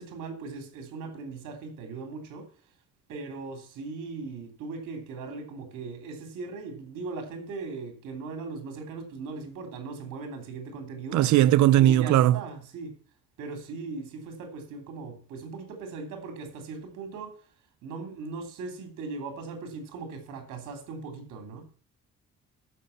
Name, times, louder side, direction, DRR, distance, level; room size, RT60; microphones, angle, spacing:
voice 1, 0.0-2.5 3.1-11.4 11.8-13.0 13.4-17.4 17.8-21.7, right 4 dB, 90° right, 3.2 m, -39 dB
voice 2, 11.1-12.3, right 13 dB, 70° right, 0.5 m, -19 dB
13.5 x 6.5 x 7.1 m
cardioid pair, 90°, 30 cm